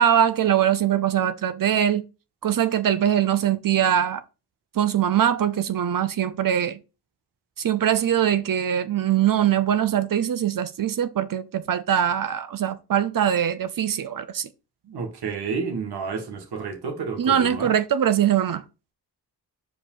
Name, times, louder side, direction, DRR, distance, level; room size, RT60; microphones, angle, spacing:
voice 1, 0.0-2.0 2.4-4.2 4.7-6.8 7.6-14.5 17.2-18.6, right 10 dB, 60° right, 0.7 m, -22 dB
voice 2, 14.9-17.7, right 5 dB, 80° right, 1.8 m, -30 dB
5.0 x 4.9 x 5.5 m
cardioid pair, 90°, 38 cm